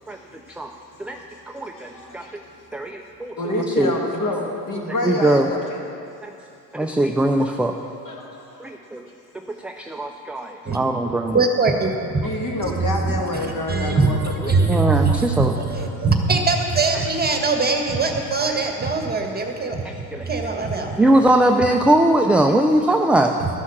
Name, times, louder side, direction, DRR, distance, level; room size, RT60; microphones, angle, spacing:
voice 1, 0.1-0.7 1.1-2.5 3.4-6.0 8.0-8.7 12.2-14.2 14.5-14.9, left 1 dB, 40° left, 0 dB, 2.2 m, -28 dB
voice 2, 1.5-2.2 2.7-3.3 3.8-3.9 5.0-5.5 6.2-6.3 6.7-7.7 8.6-9.0 9.6-11.4 14.7-15.5 20.1-20.3 21.0-23.3, right 1 dB, 5° right, 3 dB, 0.4 m, -20 dB
voice 3, 11.3-12.2 12.8-21.0 23.4-23.6, right 4 dB, 20° right, 3 dB, 1.4 m, -22 dB
12.5 x 6.3 x 7.1 m, 2.6 s
hypercardioid pair, 70°, 47 cm